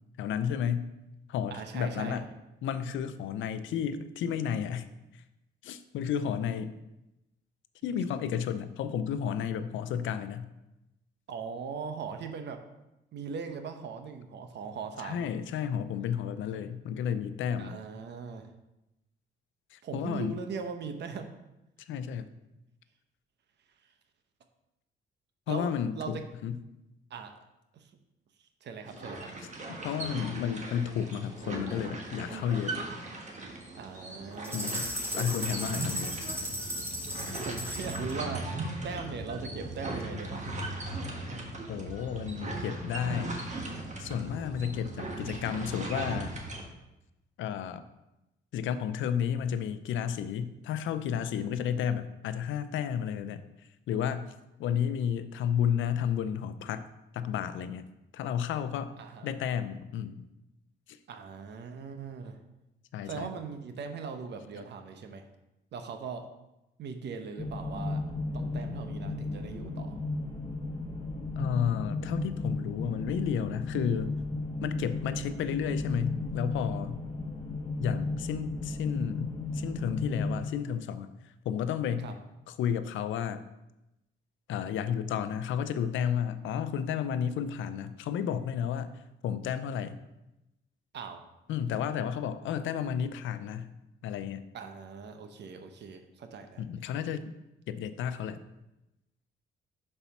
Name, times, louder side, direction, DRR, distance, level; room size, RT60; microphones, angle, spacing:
voice 1, 0.2-0.9 1.3-2.2 2.6-4.9 5.6-6.8 7.8-10.5 15.0-17.7 19.7-20.3 21.9-22.3 25.5-26.2 26.4-26.5 29.8-32.8 34.5-36.2 41.7-43.4 44.0-46.3 47.4-47.8 48.5-53.4 53.9-54.3 54.6-56.8 57.1-57.8 58.1-58.9 59.2-60.2 60.9-61.0 62.9-63.3 71.4-74.1 74.6-77.0 77.8-81.1 81.5-82.1 82.5-83.4 84.5-90.0 91.5-93.7 94.0-94.4 96.6-97.3 97.7-98.4, left 8 dB, 75° left, 11 dB, 0.5 m, -32 dB
voice 2, 1.5-2.2 7.8-7.9 11.3-12.6 13.1-15.3 17.6-18.5 19.8-21.3 25.5-26.2 27.1-27.3 27.7-27.9 28.6-29.3 33.8-34.8 37.4-38.5 38.8-40.6 59.0-59.3 61.1-62.4 63.1-65.2 65.7-66.3 66.8-70.0 82.0-82.1 90.9-91.2 94.5-96.6, right 5 dB, 60° right, 7 dB, 0.8 m, -40 dB
sound 1, 28.9-46.6, right 2 dB, 35° right, 1.3 m, -38 dB
sound 2, 34.4-38.1, equal, 10° right, 1.6 m, -36 dB
sound 3, 67.4-80.4, left 2 dB, 25° left, 1.3 m, -34 dB
5.6 x 4.1 x 5.8 m, 0.93 s
cardioid pair, 90°, 20 cm